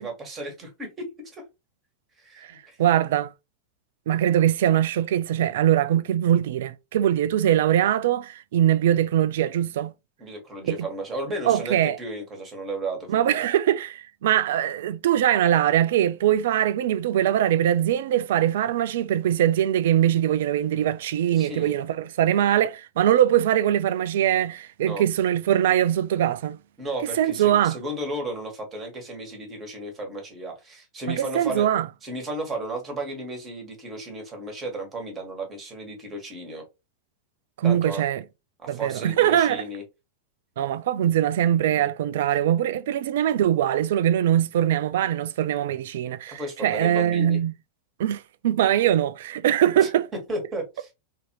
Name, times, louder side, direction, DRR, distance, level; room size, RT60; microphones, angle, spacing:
voice 1, 0.0-1.4 2.2-2.8 10.2-13.3 21.3-21.7 24.8-25.0 26.8-31.7 32.0-36.6 37.6-38.0 38.6-39.8 41.7-42.2 46.3-47.4 49.8-50.9, right 1 dB, 25° right, 1.6 m, -34 dB
voice 2, 2.4-3.3 4.1-9.9 10.6-10.9 11.4-12.0 13.1-26.6 27.2-27.8 31.1-31.9 37.6-38.2 38.7-39.6 40.6-47.5 48.0-50.1, right 11 dB, 55° right, 0.3 m, -22 dB
3.7 x 2.7 x 2.9 m
figure-of-eight pair, 90°, 0 cm